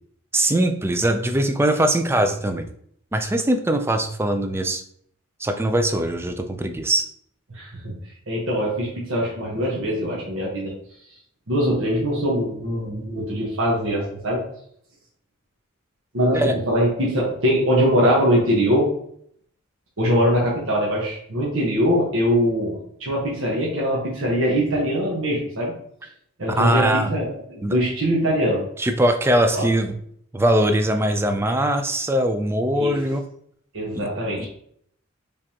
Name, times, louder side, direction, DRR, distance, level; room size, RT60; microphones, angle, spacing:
voice 1, 0.3-2.7 3.1-4.8 5.4-7.1 16.3-16.6 26.5-27.1 27.6-27.8 28.8-29.9 30.3-33.2 33.9-34.1 34.4-34.5, right 1 dB, 10° right, 7 dB, 0.3 m, -21 dB
voice 2, 7.5-8.0 8.3-10.7 11.5-14.4 16.1-18.9 20.0-25.7 26.4-28.6 29.5-29.6 32.8-33.0 33.7-34.5, equal, 75° right, -4 dB, 1.2 m, -22 dB
5.2 x 3.4 x 2.8 m, 0.66 s
head